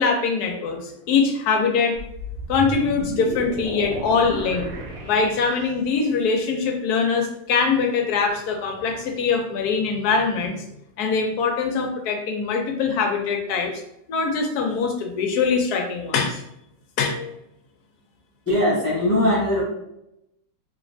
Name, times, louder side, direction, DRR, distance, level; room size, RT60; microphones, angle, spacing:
voice 1, 0.0-2.0 2.5-4.7 5.1-10.7 11.0-13.8 14.1-16.4 17.0-17.4, left 5 dB, 70° left, 3 dB, 1.1 m, -23 dB
sound 1, 1.9-5.9, right 1 dB, 70° right, 1.2 m, -33 dB
voice 2, 18.5-19.6, left 1 dB, 15° left, -7 dB, 0.5 m, -20 dB
3.1 x 3.1 x 2.6 m, 0.80 s
omnidirectional pair, 1.9 m